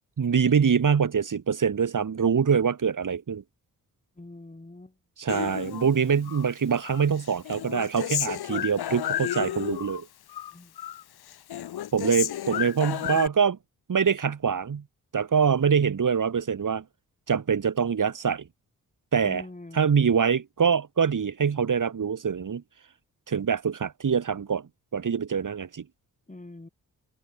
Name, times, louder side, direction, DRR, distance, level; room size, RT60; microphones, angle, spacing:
voice 1, 0.2-3.4 5.2-10.1 11.9-13.6 13.9-14.8 15.1-16.8 17.3-18.5 19.1-19.4 19.7-22.6 23.3-25.8, right 6 dB, 55° right, 3.6 m, -24 dB
voice 2, 4.2-4.9 10.5-10.7 19.2-19.9 26.3-26.7, left 2 dB, 20° left, 7.7 m, -44 dB
Human voice, 5.3-6.5 6.8-10.0 10.3-11.0 11.3-13.3, left 11 dB, 80° left, 4.5 m, -32 dB
open air
supercardioid pair, 50°, 37 cm